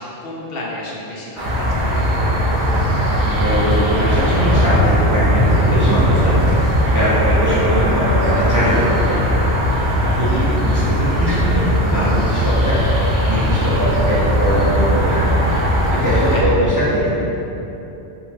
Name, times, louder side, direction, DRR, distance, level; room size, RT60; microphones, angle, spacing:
voice 1, 0.0-2.0 16.3-16.6, left 1 dB, 65° left, -4 dB, 0.7 m, -31 dB
sound 1, 1.4-16.5, equal, 25° left, 0.7 m, -20 dB
sound 2, 1.4-16.4, right 1 dB, 50° right, 0.8 m, -24 dB
voice 2, 3.2-6.4 6.9-9.6 10.0-15.4 15.9-17.2, equal, 25° right, -10 dB, 0.5 m, -21 dB
sound 3, 4.3-9.8 10.2-10.4 10.9-11.0, right 1 dB, 80° right, 0.9 m, -22 dB
3.7 x 2.2 x 4.1 m, 2.9 s
omnidirectional pair, 1.2 m